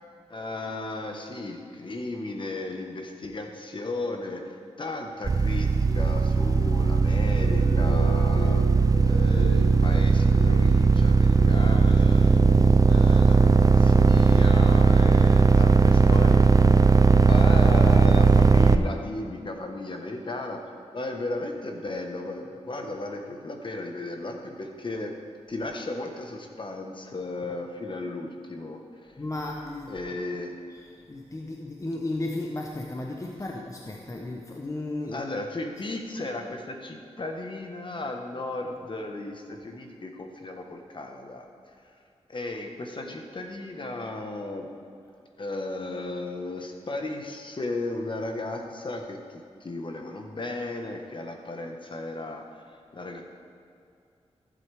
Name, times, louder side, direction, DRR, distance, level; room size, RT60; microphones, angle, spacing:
voice 1, 0.3-4.5 4.8-8.7 9.0-12.4 12.8-16.7 17.1-20.6 20.9-25.2 25.5-28.8 29.1-29.2 29.9-30.5 35.0-41.9 42.3-44.7 45.4-53.2, left 2 dB, 45° left, 3 dB, 1.3 m, -35 dB
sound 1, 5.2-18.8, right 4 dB, 30° right, 0.4 m, -18 dB
sound 2, 5.9-16.0, left 2 dB, 65° left, 2.6 m, -39 dB
voice 2, 29.2-29.9 30.7-35.3, left 2 dB, 30° left, 1 dB, 0.9 m, -34 dB
14.5 x 7.8 x 3.5 m, 2.5 s
cardioid pair, 60°, 12 cm